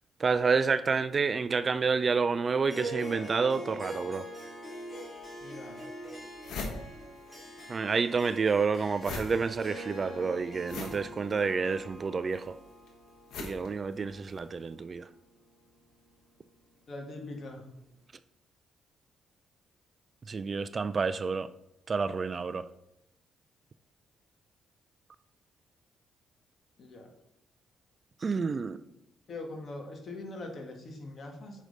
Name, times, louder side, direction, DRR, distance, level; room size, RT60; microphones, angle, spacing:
voice 1, 0.2-4.2 7.7-12.5 13.4-15.0 20.3-21.5 21.9-22.6 28.2-28.8, right 5 dB, 40° right, 0.3 m, -29 dB
Harp, 2.6-15.2, right 1 dB, 20° left, 2.4 m, -44 dB
sound 1, 5.2-5.3 5.8-5.9 6.1-7.7 7.9-14.5, left 3 dB, 75° left, 1.3 m, -42 dB
voice 2, 5.4-5.8 16.9-17.7 26.8-27.1 29.3-31.6, left 2 dB, 50° left, 1.6 m, -42 dB
6.4 x 5.0 x 3.9 m
cardioid pair, 90°, 0 cm